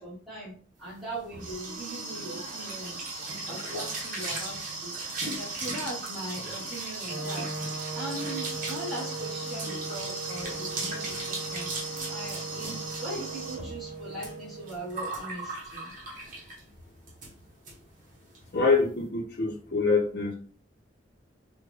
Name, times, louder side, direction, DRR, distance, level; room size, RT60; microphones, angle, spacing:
voice 1, 0.0-4.9 5.3-7.6 7.9-15.9, right 1 dB, ahead, -9 dB, 1.2 m, -40 dB
sound 1, 0.9-16.7 17.1-17.3 17.7-17.8 18.0-18.4, right 3 dB, 50° right, 0.9 m, -37 dB
Wind instrument woodwind instrument, 7.1-15.0, right 3 dB, 80° right, 0.7 m, -39 dB
voice 2, 18.5-20.3, left 4 dB, 60° left, -3 dB, 0.6 m, -25 dB
3.5 x 2.1 x 3.2 m, 0.43 s
head